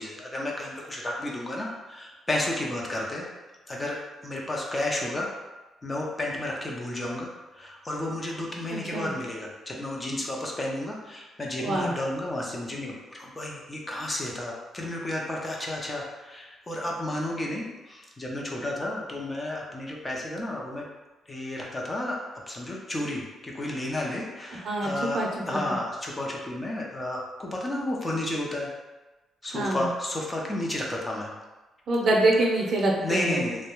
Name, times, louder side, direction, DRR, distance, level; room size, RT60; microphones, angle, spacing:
voice 1, 0.0-3.3 3.7-5.3 5.8-20.9 21.3-28.7 29.4-31.3 33.0-33.7, left 1 dB, 25° left, -2 dB, 0.5 m, -32 dB
voice 2, 11.6-11.9 24.6-25.6 29.5-29.9 31.9-33.4, right 2 dB, 60° right, -1 dB, 0.5 m, -25 dB
2.3 x 2.1 x 3.0 m, 1.1 s
cardioid pair, 90°, 0 cm